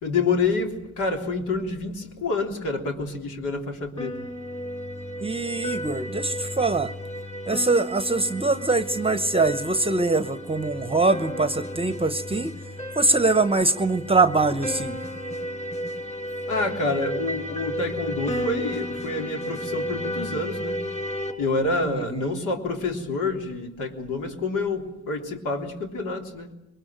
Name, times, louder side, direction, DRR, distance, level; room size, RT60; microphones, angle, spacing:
voice 1, 0.0-4.1 16.5-20.7 21.4-26.5, left 3 dB, 80° left, 2 dB, 3.5 m, -27 dB
sound 1, 4.0-21.3, equal, 25° left, 5.9 m, -33 dB
voice 2, 5.2-6.9 7.5-12.5 12.9-15.0 21.9-22.4, right 3 dB, 20° right, 11 dB, 0.9 m, -23 dB
22.5 x 20.5 x 9.0 m, 0.88 s
cardioid pair, 90°, 30 cm